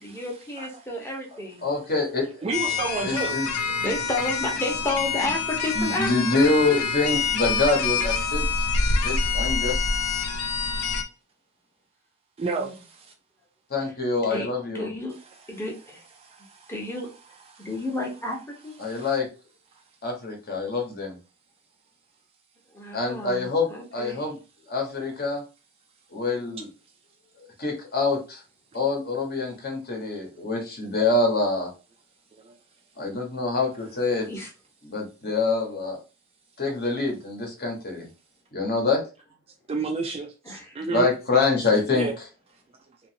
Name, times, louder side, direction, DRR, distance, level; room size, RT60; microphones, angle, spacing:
voice 1, 0.0-1.6 3.0-3.1 3.8-7.1 12.4-12.7 14.2-15.1 15.5-16.0 16.7-17.1 17.6-18.4 18.6-18.7 22.7-24.2 34.3-34.5 40.4-40.8, left 2 dB, 10° left, 0.8 m, -32 dB
voice 2, 1.6-2.3 3.0-3.5 5.8-8.7 8.9-9.8 13.7-14.9 18.8-19.3 20.0-21.2 22.9-23.7 23.9-24.4 24.7-25.4 26.1-26.7 27.6-28.4 28.7-31.7 33.0-34.3 34.8-36.0 36.6-38.1 38.5-39.0 40.9-42.1, left 3 dB, 45° left, 1.0 m, -25 dB
voice 3, 2.4-3.4 12.4-13.1 16.2-16.7 17.5-17.7 18.8-19.1 32.4-32.5 39.7-41.1 41.9-42.1, right 3 dB, 25° right, 0.3 m, -31 dB
sound 1, 2.5-11.0, left 4 dB, 80° left, 0.5 m, -26 dB
2.8 x 2.5 x 2.6 m
head